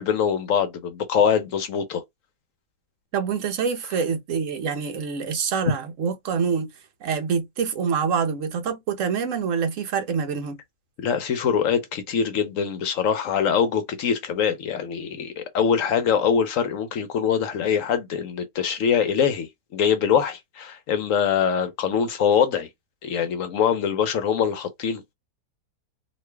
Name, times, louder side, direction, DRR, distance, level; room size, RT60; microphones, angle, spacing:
voice 1, 0.0-2.0 5.7-5.8 11.0-22.7 23.0-25.0, left 7 dB, 65° left, 0.9 m, -23 dB
voice 2, 3.1-6.7 7.0-10.6, right 6 dB, 60° right, 1.1 m, -26 dB
3.1 x 2.5 x 3.2 m
omnidirectional pair, 1.7 m